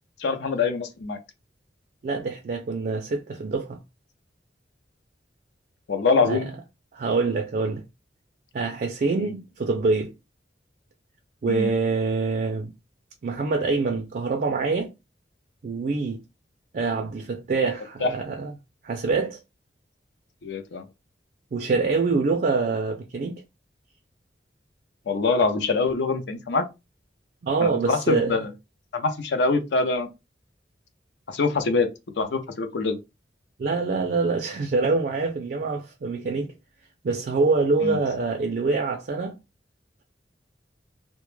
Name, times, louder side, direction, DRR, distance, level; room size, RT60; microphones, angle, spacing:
voice 1, 0.2-1.2 5.9-6.5 9.2-9.3 11.5-11.7 18.0-18.1 20.4-20.9 25.1-26.7 27.6-28.5 28.9-30.1 31.3-31.9 32.2-33.0 37.8-38.0, left 4 dB, 70° left, 0.5 m, -24 dB
voice 2, 2.0-3.8 6.2-6.4 6.9-7.8 8.5-10.1 11.4-12.7 13.2-14.9 15.6-16.2 16.7-18.5 18.8-19.4 21.5-23.4 27.4-28.4 33.6-36.5 37.0-39.4, right 4 dB, 50° right, 0.3 m, -25 dB
2.1 x 2.0 x 3.0 m
head